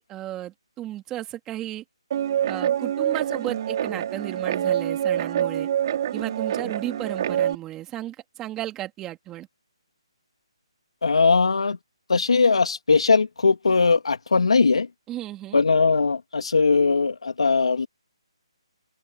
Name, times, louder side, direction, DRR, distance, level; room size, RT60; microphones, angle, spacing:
voice 1, 0.0-1.8 2.5-5.7 6.1-9.5 15.1-15.6, right 14 dB, 15° right, 2.5 m, -34 dB
Guitar, 2.1-7.5, right 10 dB, 40° right, 2.6 m, -26 dB
voice 2, 11.0-11.8 12.1-14.9 15.5-17.9, left 4 dB, 80° left, 1.7 m, -20 dB
open air
hypercardioid pair, 160°, 3 cm